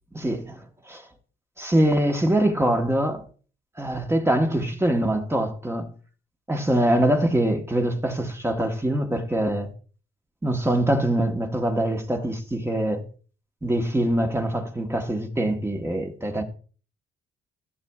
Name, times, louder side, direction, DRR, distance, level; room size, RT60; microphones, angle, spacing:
voice 1, 0.1-1.0 1.6-3.2 3.8-5.9 6.5-9.7 10.4-13.0 13.6-16.4, right 1 dB, 10° right, 1.2 m, -24 dB
14.0 x 6.8 x 2.3 m
cardioid pair, 90°, 20 cm